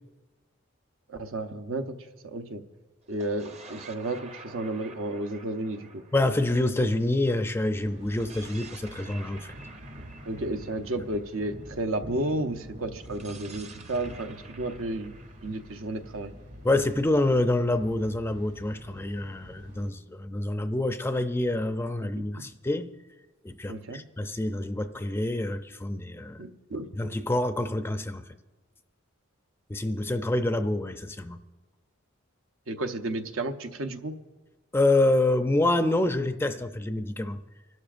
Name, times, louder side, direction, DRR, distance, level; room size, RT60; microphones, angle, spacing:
voice 1, 1.1-2.6 3.1-6.0 10.2-15.1 15.4-16.3 22.2-22.5 23.7-24.0 26.4-26.9 32.7-34.1, right 2 dB, 80° right, 0.8 m, -32 dB
sound 1, 3.0-7.4 8.0-12.0 13.0-16.8, right 4 dB, 30° right, 0.7 m, -50 dB
voice 2, 6.1-9.5 16.6-22.9 23.4-26.4 27.0-28.3 29.7-31.4 34.7-37.4, left 2 dB, 10° left, 0.4 m, -27 dB
Thunder, 7.7-19.9, equal, 60° right, 2.2 m, -46 dB
27.0 x 12.0 x 2.5 m
head